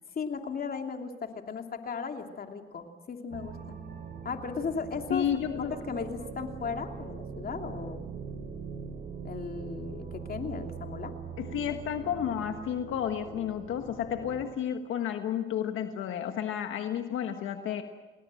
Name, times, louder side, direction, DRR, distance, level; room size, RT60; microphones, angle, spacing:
voice 1, 0.1-3.8 4.2-5.2 5.5-8.0 9.2-11.1, left 5 dB, 50° left, 4 dB, 3.0 m, -36 dB
sound 1, 3.3-14.5, right 5 dB, 50° right, 4.1 m, -42 dB
voice 2, 5.1-5.7 11.4-17.8, left 9 dB, 80° left, 6 dB, 1.5 m, -31 dB
30.0 x 20.0 x 7.7 m, 1.3 s
cardioid pair, 90°, 20 cm